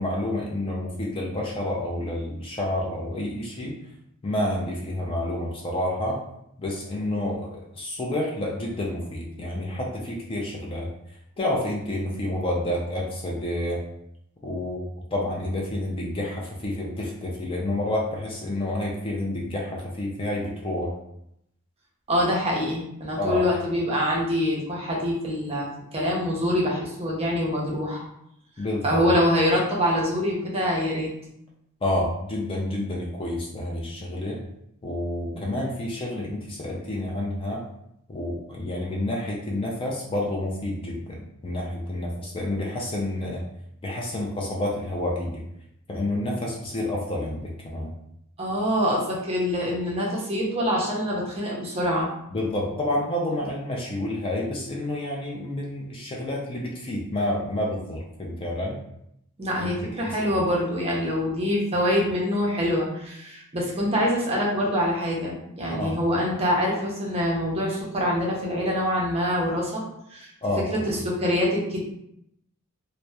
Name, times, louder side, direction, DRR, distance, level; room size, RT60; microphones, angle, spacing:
voice 1, 0.0-3.8 4.2-6.2 6.6-10.9 11.4-13.8 14.4-14.8 15.1-20.9 23.2-23.5 28.6-29.2 31.8-34.4 34.8-37.6 38.1-43.4 43.8-45.4 45.9-47.9 52.3-58.8 59.6-60.1 65.7-66.0 70.4-70.9, left 1 dB, 25° left, -2 dB, 0.4 m, -29 dB
voice 2, 22.1-28.0 28.8-31.1 48.4-52.1 59.4-69.8 70.1-70.3 70.7-71.8, equal, 25° right, -3 dB, 0.6 m, -25 dB
2.8 x 2.0 x 2.2 m, 0.77 s
head